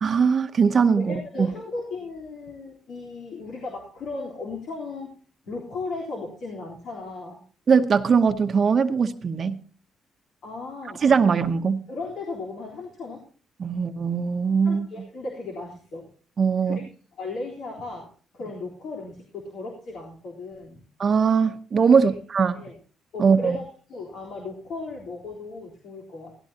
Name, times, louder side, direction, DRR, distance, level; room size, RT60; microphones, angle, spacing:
voice 1, 0.0-1.5 7.7-9.6 11.0-11.8 13.6-14.9 16.4-16.8 21.0-22.5 23.2-23.6, right 6 dB, 45° right, 8 dB, 0.9 m, -21 dB
voice 2, 0.9-5.2 5.4-7.4 10.4-11.3 11.9-13.3 14.6-16.1 16.6-16.8 17.1-20.8 22.0-22.1 22.5-22.8 23.1-23.6 23.9-26.4, left 3 dB, 75° left, -2 dB, 3.8 m, -36 dB
17.0 x 14.5 x 2.9 m, 0.42 s
cardioid pair, 90°, 0 cm